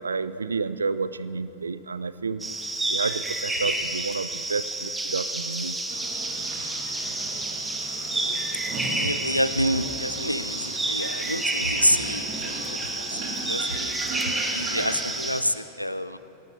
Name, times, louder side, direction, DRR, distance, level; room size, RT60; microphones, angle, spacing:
voice 1, 0.0-2.5 2.9-5.8, right 4 dB, 75° right, 15 dB, 0.4 m, -30 dB
sound 1, 2.4-15.4, right 2 dB, 10° right, 1.1 m, -30 dB
sound 2, 5.9-15.0, right 3 dB, 40° right, 2.5 m, -37 dB
voice 2, 8.9-14.1 14.5-16.2, equal, 90° left, 13 dB, 0.4 m, -28 dB
21.0 x 18.0 x 2.7 m, 2.9 s
figure-of-eight pair, 90°, 0 cm